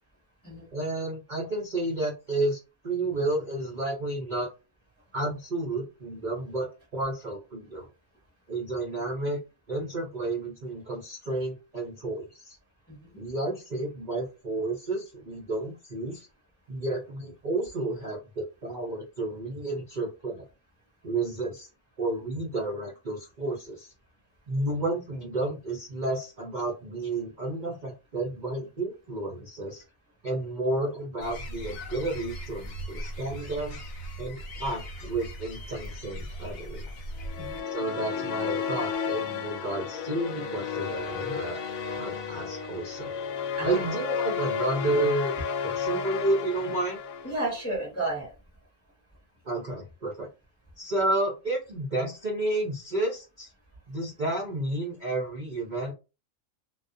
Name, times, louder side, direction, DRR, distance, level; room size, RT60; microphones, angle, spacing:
voice 1, 0.7-4.5 5.1-7.9 8.5-9.4 9.7-12.6 13.2-16.3 16.7-20.4 21.0-21.7 22.0-23.9 24.5-29.8 30.2-33.8 34.2-36.9 37.7-41.6 42.0-43.1 43.6-45.3 45.6-47.0 49.4-50.3 50.8-53.5 53.9-55.9, right 2 dB, 50° right, -3 dB, 0.6 m, -31 dB
voice 2, 12.9-13.2 37.4-37.6 43.6-44.0 47.2-48.3, right 2 dB, 15° left, -3 dB, 0.7 m, -32 dB
sound 1, 31.2-37.6, right 1 dB, 65° left, 0.9 m, -39 dB
sound 2, 37.2-47.6, left 6 dB, 90° left, 1.0 m, -32 dB
2.3 x 2.1 x 2.5 m, 0.29 s
omnidirectional pair, 1.4 m